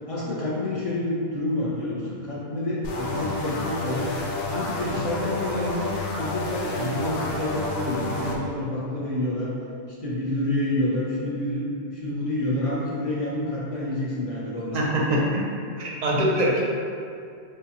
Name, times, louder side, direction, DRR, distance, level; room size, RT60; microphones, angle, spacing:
voice 1, 0.1-4.1 4.5-9.5 10.0-14.9, left 1 dB, 35° left, -6 dB, 0.8 m, -28 dB
sound 1, 2.8-8.4, left 2 dB, 80° left, 0.9 m, -30 dB
voice 2, 14.7-15.4 15.8-16.6, right 1 dB, 45° right, -4 dB, 0.6 m, -23 dB
4.9 x 2.4 x 2.9 m, 2.4 s
omnidirectional pair, 1.2 m